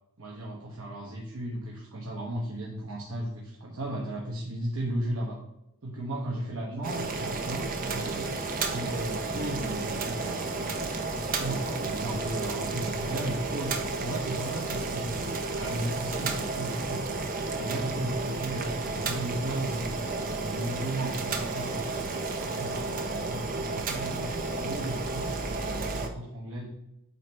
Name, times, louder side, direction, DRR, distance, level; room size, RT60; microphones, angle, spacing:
voice 1, 0.2-5.4 5.8-8.3 8.7-15.3 15.5-17.0 17.6-22.0 22.4-26.7, right 1 dB, 70° right, -2 dB, 1.1 m, -35 dB
Boiling, 6.8-26.1, right 3 dB, 40° right, 0.7 m, -32 dB
8.1 x 3.2 x 4.7 m, 0.85 s
head